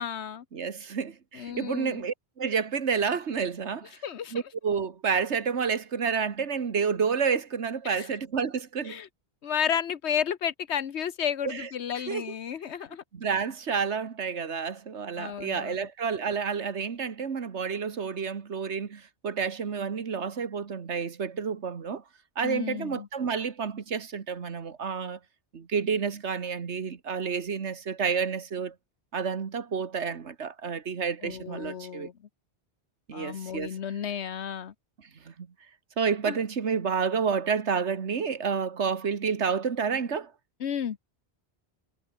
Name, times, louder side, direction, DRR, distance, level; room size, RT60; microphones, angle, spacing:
voice 1, 0.0-0.4 1.3-2.1 4.0-4.4 7.8-8.1 8.9-9.1 9.4-13.0 15.2-15.9 22.4-23.1 31.2-32.1 33.1-34.7 36.2-36.4 40.6-41.2, left 8 dB, 75° left, 1.2 m, -32 dB
voice 2, 0.5-3.9 4.3-9.0 11.4-11.7 12.1-12.2 13.1-22.0 22.4-25.2 25.5-28.7 29.1-32.1 33.1-33.8 35.3-35.5 36.0-40.3, right 6 dB, 85° right, 1.8 m, -30 dB
omnidirectional pair, 1.1 m